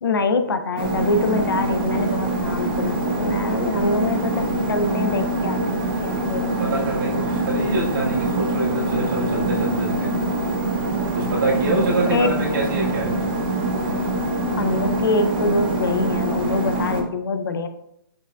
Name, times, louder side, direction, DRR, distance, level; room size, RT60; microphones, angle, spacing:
voice 1, 0.0-6.6 12.1-12.3 14.6-17.7, left 3 dB, 70° left, 8 dB, 0.5 m, -24 dB
sound 1, 0.8-17.0, right 2 dB, 25° right, 0.5 m, -24 dB
voice 2, 6.5-10.1 11.1-13.2, right 2 dB, 60° right, -4 dB, 1.4 m, -25 dB
5.8 x 2.1 x 2.3 m, 0.77 s
hypercardioid pair, 155°, 12 cm